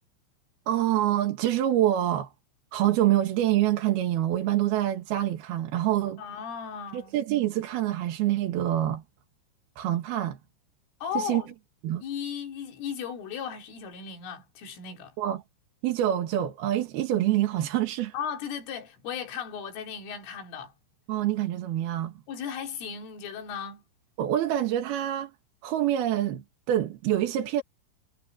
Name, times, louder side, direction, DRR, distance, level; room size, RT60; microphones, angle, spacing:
voice 1, 0.7-2.3 2.7-6.2 6.9-9.0 9.8-10.4 11.1-11.4 11.8-12.0 15.2-15.4 15.8-18.1 21.1-22.1 24.2-25.3 25.6-27.6, right 12 dB, 60° right, 3.1 m, -26 dB
voice 2, 6.2-7.1 11.0-11.5 12.0-15.1 18.1-20.7 22.3-23.8, left 7 dB, 85° left, 6.0 m, -36 dB
omnidirectional pair, 5.6 m